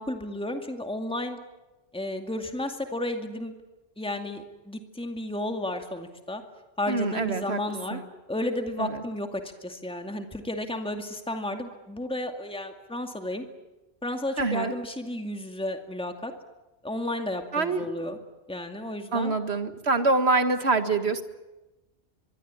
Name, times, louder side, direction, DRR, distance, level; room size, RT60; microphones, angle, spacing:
voice 1, 0.0-1.4 1.9-3.5 4.0-6.4 6.8-8.0 8.3-13.4 14.0-16.3 16.8-18.2 18.5-19.3, left 1 dB, 5° left, 5 dB, 2.3 m, -32 dB
voice 2, 6.9-7.6 7.9-8.0 8.8-9.0 14.4-14.7 17.5-17.9 19.1-21.2, right 3 dB, 75° right, 9 dB, 2.2 m, -25 dB
24.5 x 23.0 x 9.7 m, 1.0 s
omnidirectional pair, 1.1 m